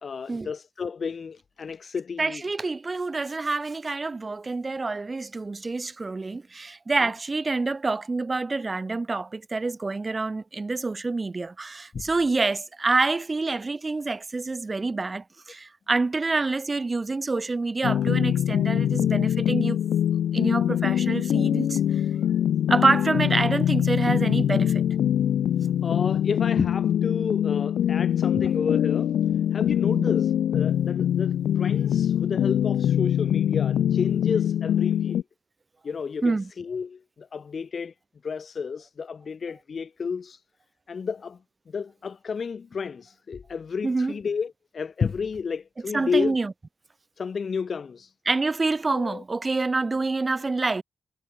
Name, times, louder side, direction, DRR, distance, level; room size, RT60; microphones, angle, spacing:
voice 1, 0.0-2.4 7.0-7.1 11.9-12.0 19.4-19.7 25.8-29.1 29.5-35.2 35.8-37.9 38.2-40.4 40.9-41.4 41.7-46.4 47.2-48.1 48.9-49.2, left 5 dB, 55° left, 1.5 m, -31 dB
voice 2, 2.2-19.8 20.3-21.8 22.7-24.8 29.9-30.1 36.2-36.5 43.8-44.1 45.9-46.5 48.2-50.8, right 3 dB, 35° right, 1.6 m, -27 dB
sound 1, 17.8-35.2, left 10 dB, 80° left, 0.6 m, -23 dB
supercardioid pair, 55°, 0 cm